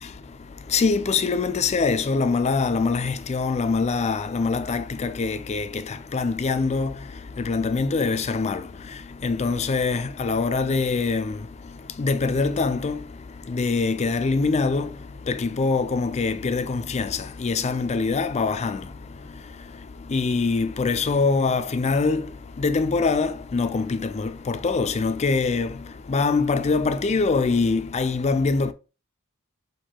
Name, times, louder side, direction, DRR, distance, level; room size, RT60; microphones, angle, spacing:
voice 1, 0.0-28.7, left 4 dB, 30° left, 0.4 m, -24 dB
4.6 x 2.6 x 4.4 m
head